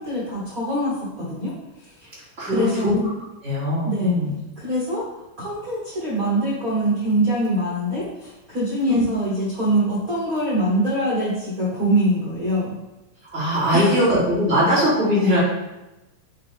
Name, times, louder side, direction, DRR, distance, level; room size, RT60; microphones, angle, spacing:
voice 1, 0.0-3.0 3.8-4.1 4.6-5.1 5.4-12.7 13.7-14.1, right 1 dB, 75° right, -7 dB, 0.8 m, -24 dB
voice 2, 2.4-3.0 3.4-4.3 8.9-9.0 13.3-15.4, equal, 25° right, -9 dB, 2.1 m, -20 dB
7.8 x 3.7 x 3.4 m, 1.0 s
omnidirectional pair, 3.9 m